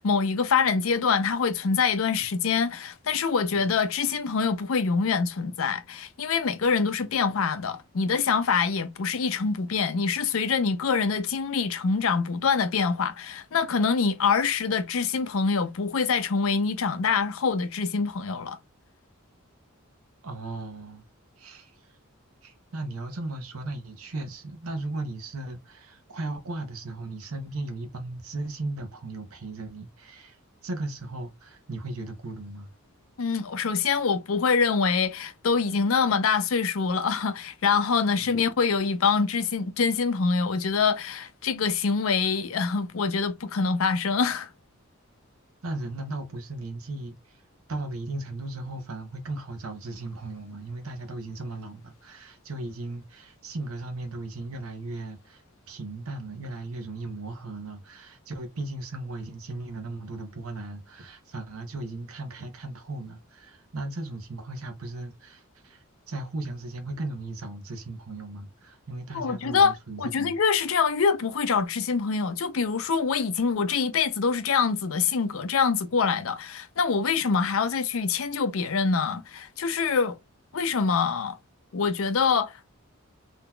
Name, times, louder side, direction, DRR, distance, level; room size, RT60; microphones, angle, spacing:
voice 1, 0.0-18.6 33.2-44.5 69.1-80.2 80.5-81.4 81.7-82.7, left 5 dB, 70° left, 0.5 m, -25 dB
voice 2, 20.2-21.0 21.4-21.9 22.4-30.4 30.6-32.7 45.6-47.4 47.7-70.4, right 2 dB, 80° right, 0.7 m, -36 dB
3.7 x 2.7 x 2.2 m
head